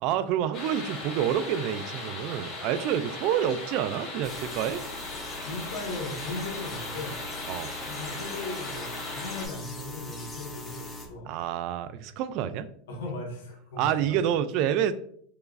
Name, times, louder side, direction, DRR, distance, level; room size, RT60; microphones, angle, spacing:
voice 1, 0.0-4.8 7.5-7.7 11.3-12.7 13.8-14.9, right 10 dB, 50° right, 13 dB, 0.3 m, -28 dB
sound 1, 0.5-9.5, left 2 dB, 35° left, 1.7 m, -38 dB
sound 2, 4.2-11.1, left 2 dB, 15° left, 0.8 m, -41 dB
voice 2, 5.4-7.3 7.8-11.4 12.9-14.2, left 2 dB, 85° left, -1 dB, 1.5 m, -38 dB
4.7 x 3.1 x 2.5 m, 0.62 s
supercardioid pair, 145°, 0 cm